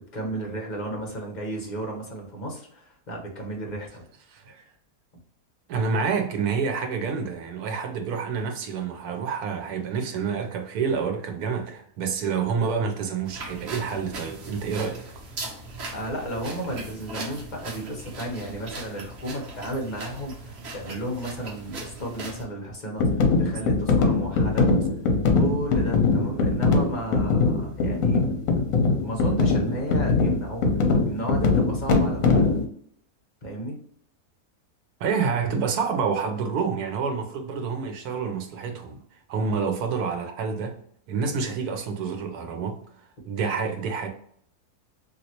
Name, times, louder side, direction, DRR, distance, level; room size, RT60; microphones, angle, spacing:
voice 1, 0.1-4.0 15.9-24.7 25.3-28.2 29.0-32.6 33.4-33.8, right 1 dB, 40° left, 0.8 m, -33 dB
voice 2, 4.3-4.7 5.7-15.0 35.0-39.0 39.3-40.8 41.1-42.8 43.3-44.1, right 5 dB, 80° right, 1.1 m, -28 dB
sound 1, 13.2-22.4, right 2 dB, 50° right, 0.9 m, -39 dB
sound 2, 23.0-32.7, left 3 dB, 70° left, 1.0 m, -22 dB
3.1 x 2.8 x 2.8 m
omnidirectional pair, 1.6 m